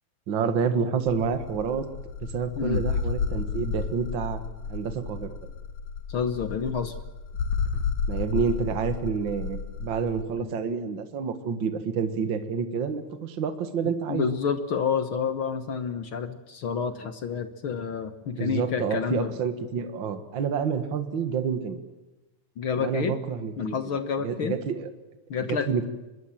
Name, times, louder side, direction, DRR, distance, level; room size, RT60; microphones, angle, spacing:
voice 1, 0.3-1.9 2.2-4.4 4.7-5.4 8.1-14.3 18.3-21.8 22.8-23.8 24.2-24.9 25.5-25.9, right 6 dB, 45° right, 9 dB, 2.2 m, -28 dB
sound 1, 1.1-10.2, left 5 dB, 70° left, 3.0 m, -31 dB
voice 2, 6.1-6.9 10.4-10.5 13.8-19.3 22.6-23.1 23.6-24.6 25.3-25.9, left 6 dB, 55° left, 10 dB, 1.6 m, -29 dB
24.0 x 21.5 x 7.5 m, 1.1 s
omnidirectional pair, 3.5 m